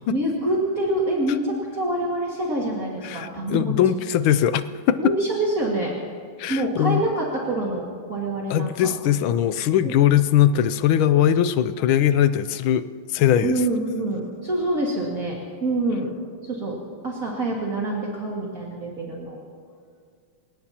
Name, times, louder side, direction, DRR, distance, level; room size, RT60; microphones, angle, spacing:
voice 1, 0.1-3.7 5.0-5.9 6.5-8.9 9.8-9.9 13.4-16.1 16.4-16.8 17.0-19.4, right 1 dB, 45° right, -4 dB, 2.4 m, -26 dB
voice 2, 3.0-5.0 6.4-7.1 8.5-12.8 13.1-13.5, left 10 dB, 85° left, 13 dB, 1.5 m, -20 dB
29.0 x 17.0 x 2.9 m, 2.1 s
omnidirectional pair, 2.2 m